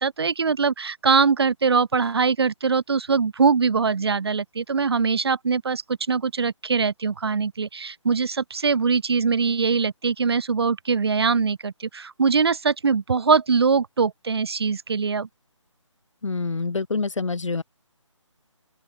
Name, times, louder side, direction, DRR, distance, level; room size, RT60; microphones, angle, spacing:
voice 1, 0.0-15.3, right 5 dB, 55° right, 0.5 m, -22 dB
voice 2, 16.2-17.6, left 4 dB, 70° left, 2.4 m, -26 dB
open air
hypercardioid pair, 170°, 16 cm